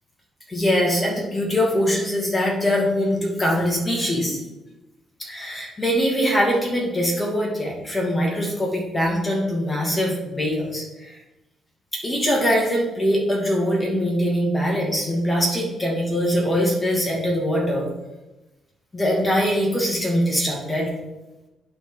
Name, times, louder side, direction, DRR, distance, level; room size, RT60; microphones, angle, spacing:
voice 1, 0.5-4.4 5.2-11.2 11.9-17.9 18.9-20.9, equal, 15° left, -3 dB, 2.5 m, -22 dB
11.0 x 4.3 x 4.1 m, 1.0 s
cardioid pair, 90°, 0 cm